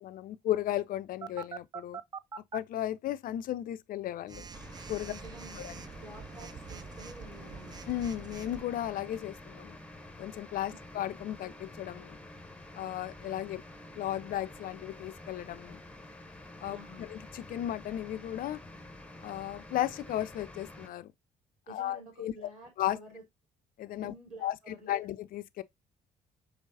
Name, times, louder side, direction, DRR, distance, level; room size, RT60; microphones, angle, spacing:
voice 1, 0.0-2.0 2.4-4.4 4.9-5.1 5.6-5.7 7.9-9.8 10.2-12.2 12.7-13.6 14.0-15.8 16.6-18.6 19.2-21.1 21.7-22.5 22.8-23.0 23.8-24.1 24.4-25.6, left 12 dB, 45° left, 0.4 m, -35 dB
Telephone, 1.2-2.6 4.3-8.6, right 6 dB, 20° right, 0.3 m, -44 dB
sound 1, 4.5-20.9, left 1 dB, 5° left, 0.7 m, -49 dB
voice 2, 5.0-7.8 10.7-10.8 16.7-17.1 21.7-23.2 24.0-24.9, equal, 40° right, 3.5 m, -50 dB
5.3 x 3.1 x 2.6 m
figure-of-eight pair, 45°, 20 cm